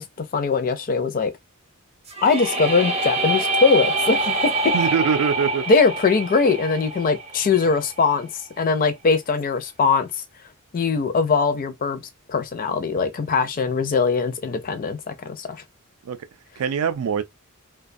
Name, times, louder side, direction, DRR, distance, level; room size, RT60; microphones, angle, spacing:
voice 1, 0.0-1.3 2.2-4.7 5.7-10.1 10.7-12.0 12.3-15.6, left 4 dB, 40° left, 0.4 m, -21 dB
sound 1, 2.1-7.9, right 2 dB, 30° right, 0.6 m, -25 dB
voice 2, 4.7-5.6 16.0-16.2 16.6-17.2, right 7 dB, 70° right, 0.4 m, -23 dB
2.3 x 2.2 x 2.5 m
head